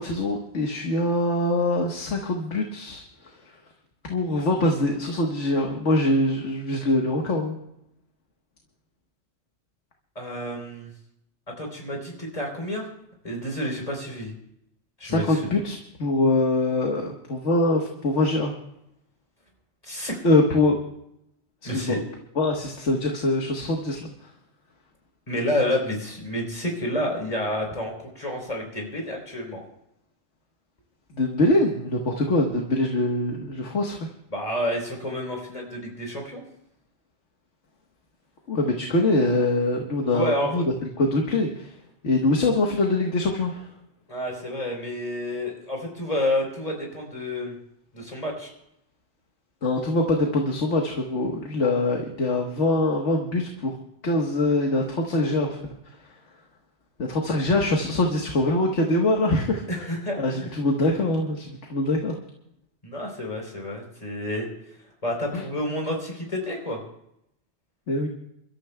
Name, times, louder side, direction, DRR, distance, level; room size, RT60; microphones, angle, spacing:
voice 1, 0.0-3.3 4.1-7.6 15.0-18.5 20.2-20.8 21.7-22.0 22.3-24.3 31.1-34.1 38.5-41.7 42.0-43.7 49.6-53.7 54.0-55.6 57.0-59.8 60.2-62.2 65.3-65.4 67.9-68.1, left 2 dB, 90° left, 1 dB, 1.7 m, -23 dB
voice 2, 10.2-10.9 11.6-12.9 13.2-14.3 15.0-15.4 19.8-20.2 21.6-22.0 25.3-29.6 34.3-36.4 40.1-40.6 44.1-47.6 47.9-48.5 59.7-60.5 62.8-64.5 65.0-66.8, left 1 dB, 30° left, 0 dB, 3.8 m, -29 dB
29.0 x 13.0 x 2.3 m, 0.79 s
omnidirectional pair, 1.2 m